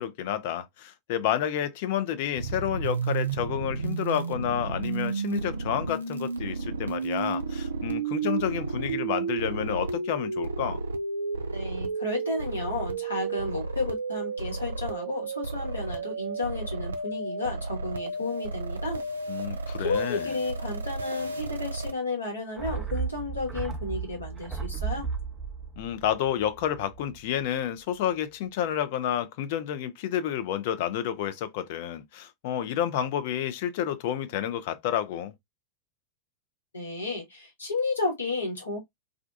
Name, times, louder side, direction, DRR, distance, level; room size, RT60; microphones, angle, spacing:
voice 1, 0.0-10.8 19.3-20.3 25.8-35.3, left 10 dB, 50° left, 0.4 m, -30 dB
sound 1, 2.3-21.9, right 4 dB, 75° right, 0.3 m, -32 dB
voice 2, 11.5-19.0 19.8-25.1 36.7-38.8, left 3 dB, 75° left, 1.2 m, -32 dB
sound 2, 22.6-27.2 27.4-27.5, right 6 dB, 20° right, 0.5 m, -34 dB
2.4 x 2.2 x 2.4 m
figure-of-eight pair, 90°, 0 cm